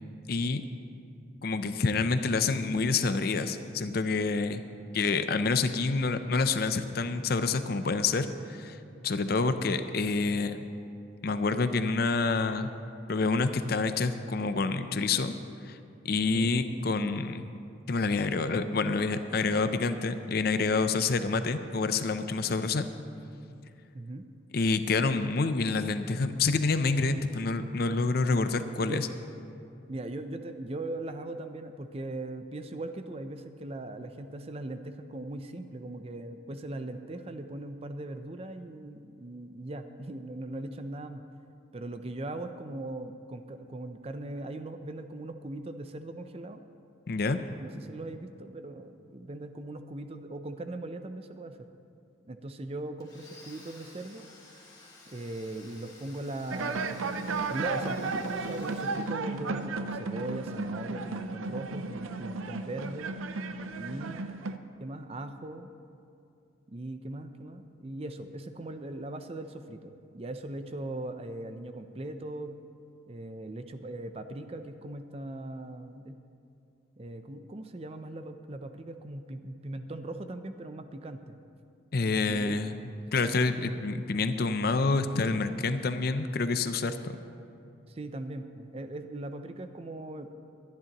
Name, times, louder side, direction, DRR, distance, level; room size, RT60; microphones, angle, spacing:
voice 1, 0.3-0.6 1.4-4.6 4.9-10.6 11.2-12.7 13.1-15.3 15.6-15.8 16.0-17.5 17.9-22.9 24.5-29.1 47.1-47.4 81.9-82.7 83.1-87.2, left 4 dB, 50° left, 10 dB, 0.5 m, -28 dB
voice 2, 23.9-24.3 28.8-29.0 29.9-41.2 41.7-46.6 47.6-51.7 52.2-54.3 55.1-57.1 57.5-63.2 63.8-64.3 64.8-65.7 66.7-72.6 73.1-76.2 77.0-81.4 82.2-82.5 87.9-90.3, right 2 dB, 30° right, 8 dB, 0.5 m, -39 dB
Domestic sounds home sounds, 53.0-59.8, left 2 dB, 20° left, 2.5 m, -54 dB
sound 1, 56.5-64.6, right 3 dB, 90° right, 0.6 m, -34 dB
22.0 x 10.5 x 3.0 m, 2.5 s
head